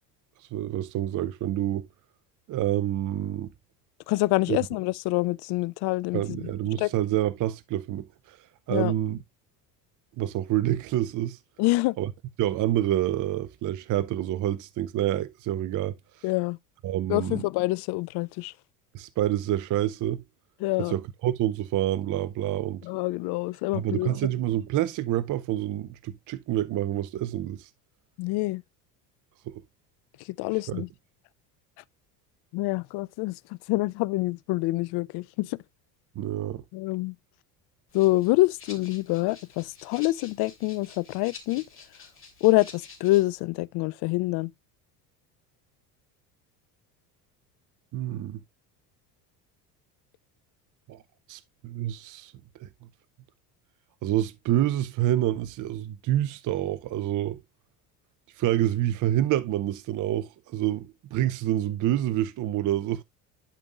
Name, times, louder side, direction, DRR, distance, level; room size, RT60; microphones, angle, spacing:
voice 1, 0.5-1.9 2.5-3.5 4.5-4.6 6.1-8.4 8.7-9.2 10.2-11.4 12.0-12.1 12.4-16.0 16.8-17.4 18.9-20.2 20.8-22.8 23.7-27.7 29.5-29.6 30.7-30.8 36.2-36.6 47.9-48.4 50.9-51.0 51.3-52.3 52.6-52.7 54.0-57.4 58.4-63.0, right 13 dB, 40° right, 0.6 m, -27 dB
voice 2, 4.1-6.5 6.8-6.9 8.7-8.9 11.6-12.0 16.2-16.6 17.1-18.5 20.6-21.0 22.8-24.1 28.2-28.6 30.2-30.9 32.5-35.6 36.7-37.2 37.9-41.6 42.4-44.5, left 20 dB, 55° left, 0.5 m, -26 dB
Rattle (instrument), 37.9-43.4, left 4 dB, 25° left, 3.2 m, -49 dB
11.5 x 5.3 x 2.4 m
hypercardioid pair, 75°, 47 cm